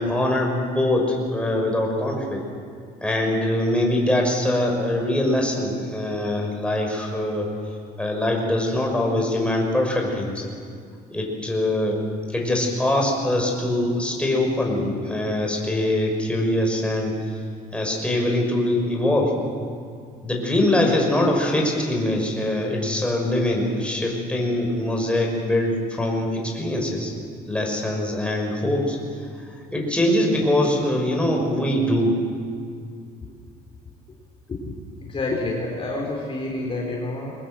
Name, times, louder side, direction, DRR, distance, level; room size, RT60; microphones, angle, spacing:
voice 1, 0.0-2.4 3.0-7.5 8.0-10.4 11.1-12.0 12.3-17.1 17.7-19.3 20.2-27.1 27.5-29.0 29.5-32.2, left 1 dB, 5° left, 0 dB, 5.9 m, -23 dB
voice 2, 35.0-37.3, left 2 dB, 35° left, -1 dB, 4.2 m, -28 dB
23.5 x 19.5 x 7.7 m, 2.2 s
cardioid pair, 110°, 17 cm